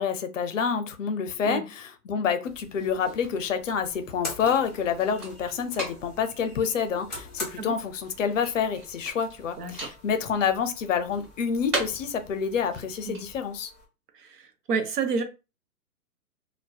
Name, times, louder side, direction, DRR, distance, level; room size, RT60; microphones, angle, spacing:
voice 1, 0.0-13.7, left 7 dB, 55° left, 9 dB, 0.5 m, -28 dB
sound 1, 2.4-13.5, right 2 dB, 30° right, 1.3 m, -40 dB
sound 2, 3.2-13.9, left 2 dB, ahead, 0.4 m, -45 dB
voice 2, 9.6-9.9 13.1-13.2 14.2-14.4 14.7-15.2, right 5 dB, 80° right, 7 dB, 0.7 m, -29 dB
2.5 x 2.2 x 2.3 m, 0.29 s
hypercardioid pair, 145°, 47 cm